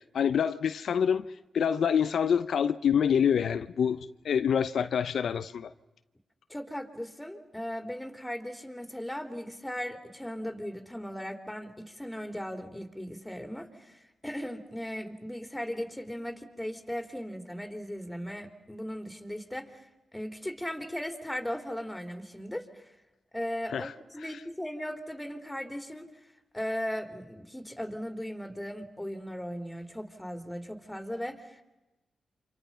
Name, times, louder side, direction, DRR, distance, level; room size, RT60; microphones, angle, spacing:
voice 1, 0.1-1.2 1.5-5.7 23.7-23.9 24.3-24.4, left 7 dB, 75° left, 0.7 m, -26 dB
voice 2, 6.5-19.9 20.1-22.9 23.3-26.1 26.5-31.6, equal, 10° left, 3.6 m, -37 dB
29.0 x 26.0 x 5.7 m
cardioid pair, 55°, 0 cm